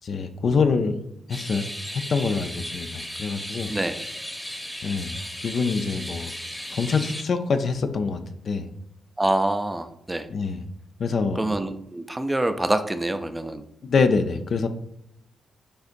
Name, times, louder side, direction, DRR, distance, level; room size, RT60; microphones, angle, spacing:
voice 1, 0.0-1.0 1.3-1.6 1.9-3.7 4.8-5.2 5.4-6.3 6.7-8.7 10.3-10.6 11.0-11.4 13.8-14.7, left 4 dB, 60° left, 8 dB, 0.4 m, -25 dB
sound 1, 1.3-7.2, equal, 5° left, 0.9 m, -35 dB
voice 2, 9.2-10.3 11.4-13.6, right 1 dB, 15° right, 9 dB, 0.4 m, -26 dB
6.5 x 2.5 x 2.5 m, 0.76 s
supercardioid pair, 60°, 0 cm